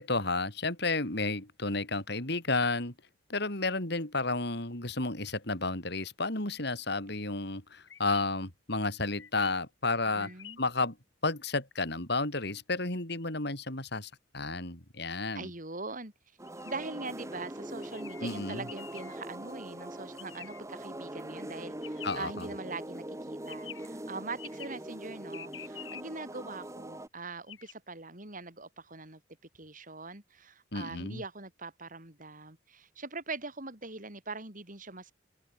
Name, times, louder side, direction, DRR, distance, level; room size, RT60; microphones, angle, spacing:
voice 1, 0.0-2.9 3.3-10.3 10.6-11.0 11.2-15.5 18.2-18.7 22.0-22.5 30.7-31.2, left 3 dB, 60° left, 5.4 m, -32 dB
sound 1, 7.9-8.3 9.2-9.5 10.2-10.6 16.5-16.9 17.8-18.3 18.7-19.2 20.2-20.6 21.8-22.2 23.5-23.9 24.4-24.8 25.3-26.0 27.5-27.7, left 10 dB, 90° left, 4.5 m, -47 dB
voice 2, 10.1-10.6 15.3-16.1 16.6-29.2 29.5-35.1, right 3 dB, 45° right, 6.3 m, -42 dB
sound 2, 16.4-27.1, right 1 dB, 15° right, 1.7 m, -42 dB
head